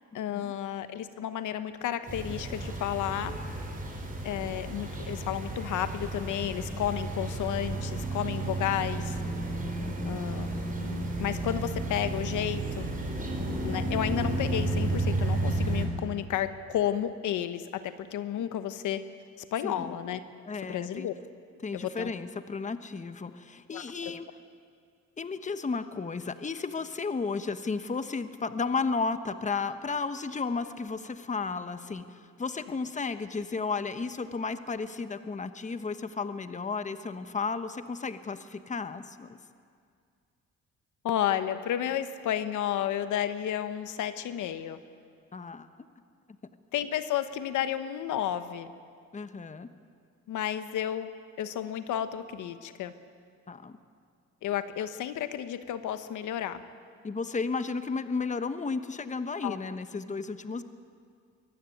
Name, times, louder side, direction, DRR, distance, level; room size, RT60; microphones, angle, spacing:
voice 1, 0.1-3.4 4.2-9.2 10.0-10.5 10.8-12.9 13.6-19.0 19.5-20.2 20.6-21.1 21.7-22.1 23.7-24.1 41.0-44.8 46.7-48.7 50.3-51.1 51.4-52.9 54.4-56.6 59.4-59.6, left 10 dB, 80° left, 11 dB, 1.1 m, -32 dB
sound 1, 2.1-15.9, right 2 dB, 25° right, 5.3 m, -32 dB
voice 2, 9.8-10.2 18.4-18.5 19.6-20.0 20.4-21.1 21.6-24.3 25.2-39.4 45.3-45.7 49.1-49.7 53.5-53.8 57.0-60.6, left 4 dB, 25° left, 10 dB, 1.1 m, -33 dB
23.0 x 15.0 x 9.3 m, 2.2 s
cardioid pair, 90°, 30 cm